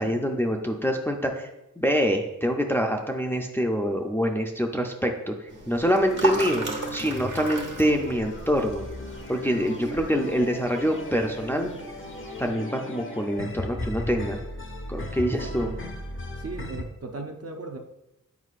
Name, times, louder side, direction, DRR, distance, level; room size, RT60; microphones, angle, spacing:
voice 1, 0.0-1.5 1.8-5.3 5.7-6.7 6.9-8.9 9.3-11.7 12.4-14.4 14.9-15.7, equal, 5° left, 2 dB, 0.5 m, -25 dB
sound 1, 5.5-12.5, right 3 dB, 65° right, 1.3 m, -36 dB
sound 2, 6.0-16.8, left 1 dB, 40° left, 0.7 m, -36 dB
voice 2, 6.2-6.7 9.9-10.0 15.2-15.8 16.4-17.8, right 3 dB, 50° right, 3 dB, 0.7 m, -38 dB
8.2 x 4.8 x 2.5 m, 0.90 s
wide cardioid pair, 105°, 33 cm